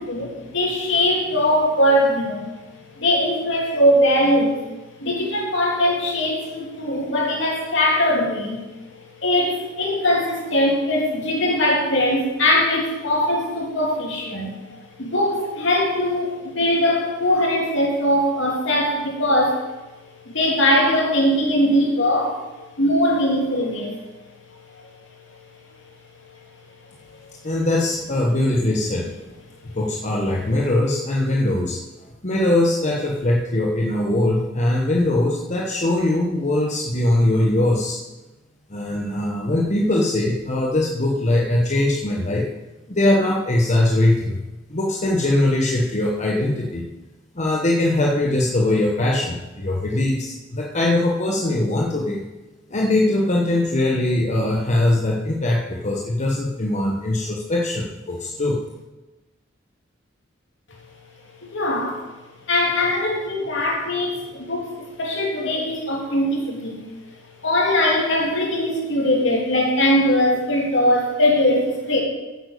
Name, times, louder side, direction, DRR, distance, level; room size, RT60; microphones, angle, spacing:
voice 1, 0.0-8.6 9.2-19.6 20.2-22.4 22.8-24.0 61.4-62.0 62.5-66.9 67.4-72.0, left 1 dB, 70° left, -1 dB, 3.1 m, -21 dB
voice 2, 27.4-29.1 29.8-31.8 32.2-38.0 38.7-42.5 42.9-44.4 44.7-46.8 47.3-52.3 52.7-58.6, left 1 dB, 40° left, -1 dB, 1.1 m, -21 dB
9.9 x 8.0 x 6.7 m, 1.1 s
head